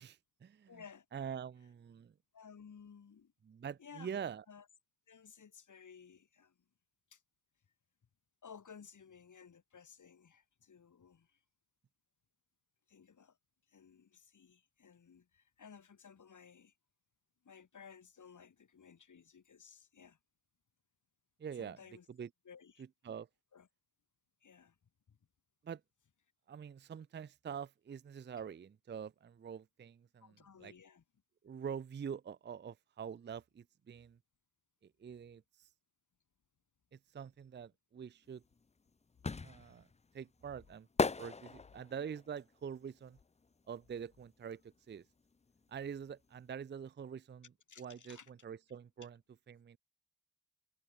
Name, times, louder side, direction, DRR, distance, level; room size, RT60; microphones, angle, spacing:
voice 1, 0.0-0.8 1.1-2.1 3.5-4.4 21.4-21.8 22.1-22.3 23.0-23.3 25.6-25.8 26.5-30.3 30.6-30.7 31.4-34.2 34.8-35.7 36.9-38.4 39.4-39.9 40.1-40.9 41.2-43.2 43.7-45.1 45.7-47.5 47.8-49.2 49.5-49.8, right 7 dB, 40° right, 0.4 m, -45 dB
voice 2, 0.7-1.1 2.3-3.3 3.8-4.7 5.1-6.6 7.1-7.2 8.4-11.4 12.9-13.4 13.7-16.7 17.4-20.2 21.6-22.1 22.4-22.8 23.5-23.7 24.4-24.8 25.1-25.2 30.2-31.0 39.2-39.4 47.7-48.3, left 6 dB, 80° left, 1.6 m, -57 dB
sound 1, 38.4-44.2 44.5-46.1 46.3-46.4, left 4 dB, 25° left, 0.4 m, -38 dB
cardioid pair, 50°, 30 cm